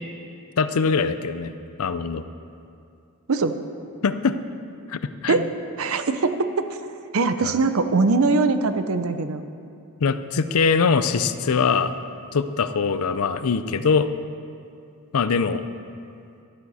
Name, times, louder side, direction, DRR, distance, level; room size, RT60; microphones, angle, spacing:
voice 1, 0.6-1.5 1.8-2.2 4.0-4.4 4.9-5.5 7.4-7.5 10.0-11.9 12.3-14.1 15.1-15.6, left 5 dB, 85° left, 12 dB, 0.5 m, -22 dB
voice 2, 5.8-6.7 7.1-9.4, right 3 dB, 70° right, 10 dB, 0.7 m, -21 dB
14.0 x 12.0 x 4.2 m, 2.5 s
head